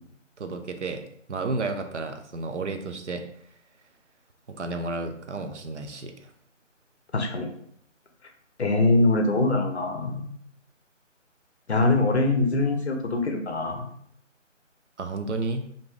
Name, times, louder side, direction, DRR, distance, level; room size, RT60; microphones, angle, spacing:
voice 1, 0.4-1.0 1.3-3.2 4.5-6.3 15.0-15.7, right 3 dB, 65° right, 6 dB, 0.5 m, -32 dB
voice 2, 7.1-7.5 8.6-10.2 11.7-13.8, left 2 dB, 60° left, 4 dB, 0.5 m, -23 dB
2.6 x 2.2 x 3.2 m, 0.64 s
figure-of-eight pair, 175°, 38 cm